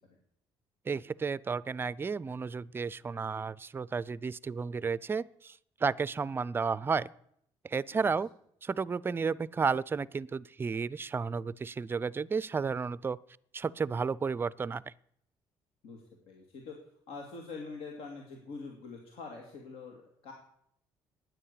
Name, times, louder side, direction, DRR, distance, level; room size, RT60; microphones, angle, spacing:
voice 1, 0.9-5.6 5.8-7.1 7.6-8.3 8.6-13.2 13.5-14.8, right 5 dB, 20° right, 21 dB, 0.4 m, -32 dB
voice 2, 15.8-16.7 17.1-20.3, left 4 dB, 75° left, 1 dB, 2.3 m, -45 dB
9.9 x 9.3 x 8.3 m, 0.72 s
cardioid pair, 100°, 10 cm